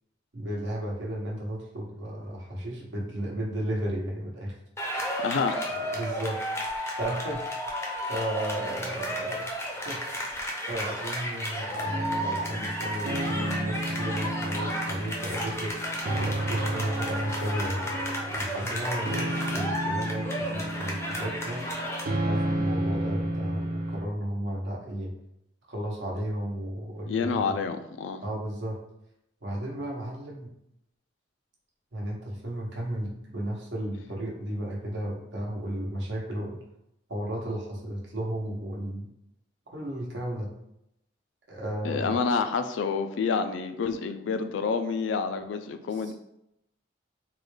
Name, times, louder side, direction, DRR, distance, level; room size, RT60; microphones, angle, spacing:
voice 1, 0.3-4.6 5.7-6.4 7.0-7.5 8.1-9.5 9.8-10.0 10.7-15.9 16.1-17.8 18.3-21.7 22.2-25.2 25.7-27.6 28.2-28.8 29.4-30.5 31.9-36.6 37.1-39.1 39.7-40.5 41.5-42.2 45.9-46.1, right 1 dB, 75° right, -2 dB, 0.9 m, -34 dB
sound 1, 4.8-22.0, equal, 15° left, 0.5 m, -33 dB
voice 2, 5.2-5.8 27.1-28.2 41.8-46.1, left 5 dB, 80° left, 9 dB, 0.3 m, -28 dB
sound 2, 11.8-24.0, right 1 dB, 50° right, 0.4 m, -32 dB
3.7 x 2.2 x 3.2 m, 0.80 s
head